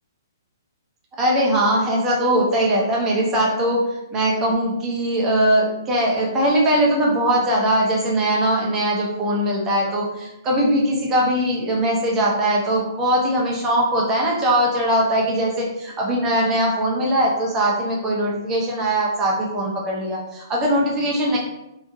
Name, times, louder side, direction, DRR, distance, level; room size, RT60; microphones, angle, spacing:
voice 1, 1.2-21.4, right 1 dB, 20° right, -3 dB, 0.8 m, -21 dB
3.6 x 2.7 x 2.5 m, 0.90 s
figure-of-eight pair, 120°, 2 cm